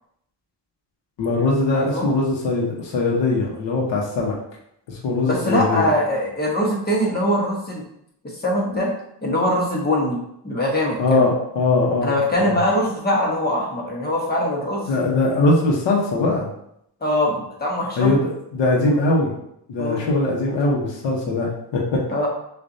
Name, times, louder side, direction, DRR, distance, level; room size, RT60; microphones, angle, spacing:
voice 1, 1.2-4.4 4.9-5.9 11.0-12.6 14.9-16.5 18.0-19.3 19.7-22.0, left 2 dB, 85° left, -2 dB, 1.2 m, -21 dB
voice 2, 1.7-2.1 5.2-7.8 8.4-8.9 9.2-10.2 10.4-11.3 12.0-14.9 17.0-18.2 19.8-20.0 22.1-22.3, left 1 dB, 20° left, -2 dB, 1.1 m, -22 dB
6.7 x 2.6 x 2.7 m, 0.75 s
cardioid pair, 160°, 43 cm